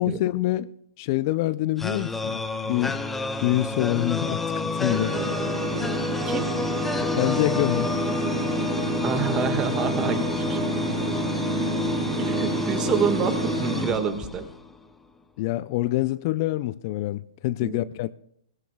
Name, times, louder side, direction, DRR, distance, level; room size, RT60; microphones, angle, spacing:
voice 1, 0.0-3.0 3.4-5.2 7.1-7.9 15.4-18.1, left 16 dB, 45° left, 0.4 m, -26 dB
sound 1, 1.8-14.7, left 3 dB, 5° left, 0.9 m, -28 dB
sound 2, 4.9-13.8, right 8 dB, 65° right, 0.6 m, -33 dB
voice 2, 9.0-10.6 12.2-14.4 17.6-17.8, right 6 dB, 25° right, 1.6 m, -27 dB
20.5 x 16.5 x 2.3 m
hypercardioid pair, 125°, 3 cm